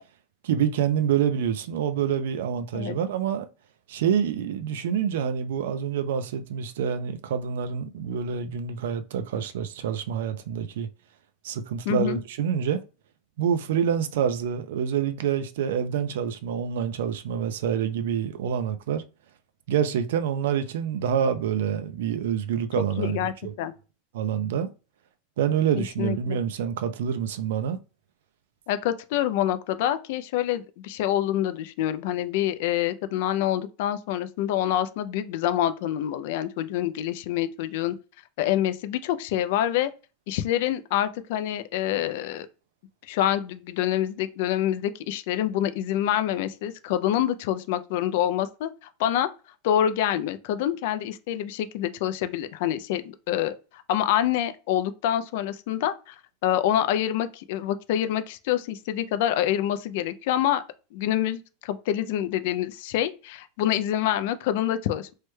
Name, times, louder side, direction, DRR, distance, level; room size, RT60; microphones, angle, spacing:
voice 1, 0.4-3.5 3.9-10.9 11.4-12.8 13.4-19.0 19.7-23.5 24.1-24.7 25.4-27.8, right 8 dB, 70° right, 0.4 m, -27 dB
voice 2, 11.9-12.2 23.0-23.7 25.8-26.4 28.7-37.9 38.4-39.9 40.3-42.5 43.1-48.7 49.0-49.3 49.6-53.5 53.9-56.2 56.4-60.6 60.9-65.1, left 11 dB, 50° left, 0.3 m, -26 dB
3.1 x 2.1 x 3.1 m
supercardioid pair, 180°, 0 cm